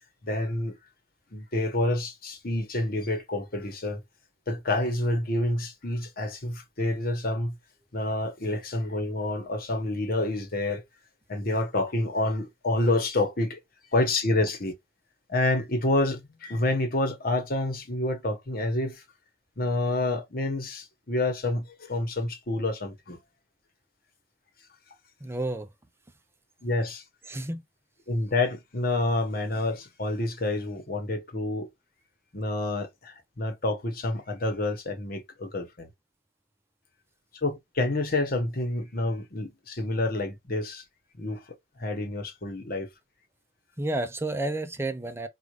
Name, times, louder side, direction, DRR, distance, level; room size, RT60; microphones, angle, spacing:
voice 1, 0.2-0.8 1.3-4.0 4.5-7.5 7.9-10.8 11.3-13.6 13.9-14.7 15.3-19.0 19.6-23.2 26.6-27.0 28.1-31.7 32.3-35.9 37.4-40.8 41.2-41.4 41.8-42.9, left 2 dB, 55° left, 1.3 m, -28 dB
voice 2, 25.2-25.7 27.3-27.6 43.8-45.3, right 2 dB, 15° right, 0.5 m, -30 dB
5.0 x 2.5 x 3.1 m
head